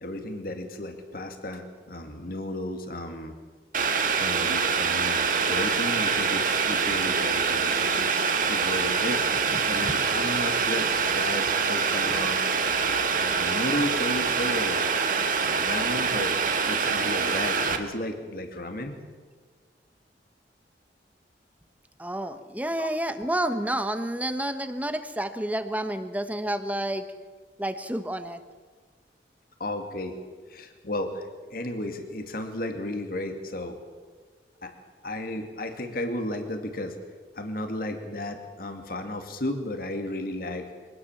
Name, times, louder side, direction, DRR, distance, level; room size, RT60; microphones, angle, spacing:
voice 1, 0.0-3.3 3.9-12.5 13.2-14.8 15.4-16.3 16.7-19.0 22.8-22.9 29.6-30.2 30.5-33.8 34.6-34.7 35.0-37.0 37.4-40.7, left 1 dB, 55° left, 6 dB, 2.3 m, -34 dB
Boiling, 3.7-17.8, right 5 dB, 50° right, 1.6 m, -25 dB
voice 2, 9.1-9.9 22.0-27.0 27.6-28.4, right 1 dB, 10° right, 9 dB, 1.1 m, -30 dB
24.5 x 18.0 x 7.3 m, 1.4 s
head